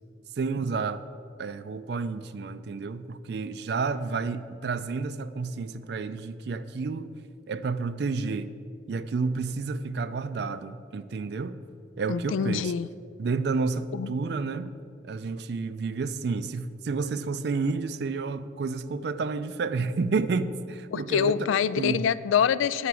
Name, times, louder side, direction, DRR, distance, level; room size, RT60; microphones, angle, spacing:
voice 1, 0.4-1.0 1.4-7.1 7.5-8.5 8.9-11.6 12.0-12.7 13.2-14.7 15.0-21.5 21.8-22.1, right 4 dB, 60° right, 0.4 m, -30 dB
voice 2, 12.1-12.9 13.9-14.2 20.9-22.9, left 8 dB, 85° left, 0.3 m, -25 dB
8.1 x 5.8 x 7.6 m
head